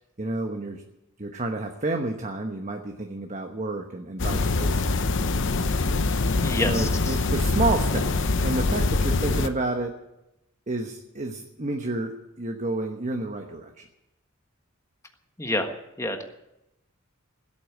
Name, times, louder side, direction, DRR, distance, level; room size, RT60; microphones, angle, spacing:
voice 1, 0.2-0.8 1.2-4.9 6.6-10.0 10.7-13.9, right 2 dB, 35° right, 3 dB, 1.1 m, -30 dB
sound 1, 4.2-9.5, left 3 dB, 60° left, 0.8 m, -24 dB
voice 2, 6.4-7.2 15.4-15.7 16.0-16.2, left 1 dB, 15° left, 5 dB, 1.5 m, -28 dB
16.5 x 8.5 x 9.4 m, 0.90 s
head